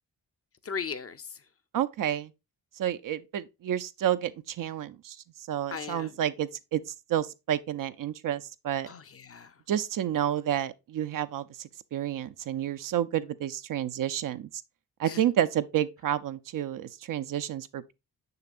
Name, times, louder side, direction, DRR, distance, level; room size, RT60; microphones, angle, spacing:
voice 1, 0.6-1.4 5.7-6.2 8.8-9.6 15.0-15.2, left 6 dB, 35° left, 0.7 m, -38 dB
voice 2, 1.7-2.3 2.8-5.2 5.5-8.9 9.7-14.5 15.0-17.9, right 11 dB, 60° right, 0.5 m, -30 dB
6.8 x 5.8 x 2.5 m
supercardioid pair, 60°, 38 cm